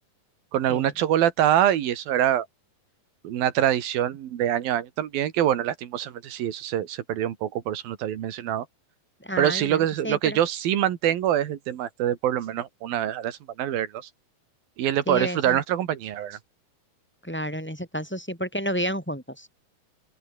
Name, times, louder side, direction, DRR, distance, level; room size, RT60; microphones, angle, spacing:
voice 1, 0.5-2.5 3.2-8.7 9.4-14.1 14.8-16.4, right 11 dB, 90° right, 3.6 m, -25 dB
voice 2, 9.2-10.4 15.1-15.6 17.2-19.5, equal, 5° left, 4.4 m, -31 dB
open air
omnidirectional pair, 4.0 m